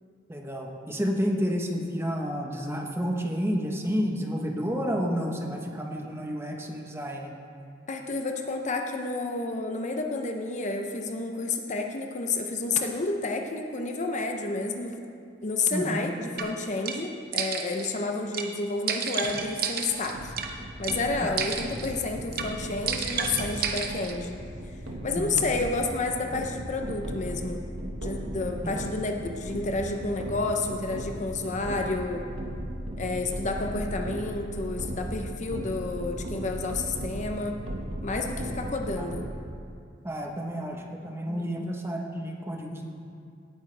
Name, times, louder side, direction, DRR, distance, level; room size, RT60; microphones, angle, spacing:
voice 1, 0.3-7.3 15.7-16.0 21.2-21.4 25.2-25.5 28.6-28.7 39.0-39.3 40.0-42.8, equal, 15° right, 1 dB, 1.0 m, -30 dB
voice 2, 7.9-15.0 15.4-20.3 20.8-24.4 25.0-27.6 28.0-32.3 33.0-37.6 38.0-39.3 41.3-41.5, left 3 dB, 40° left, 4 dB, 0.7 m, -30 dB
sound 1, 16.4-16.5 16.9-17.0 17.3-17.9 18.3-18.5 18.9-20.5 20.8-21.0 21.4-21.9 22.3-22.5 22.9-24.1, right 6 dB, 50° right, 0.9 m, -31 dB
sound 2, 20.1-39.3, equal, 85° right, 1.5 m, -37 dB
17.5 x 9.1 x 3.4 m, 2.4 s
head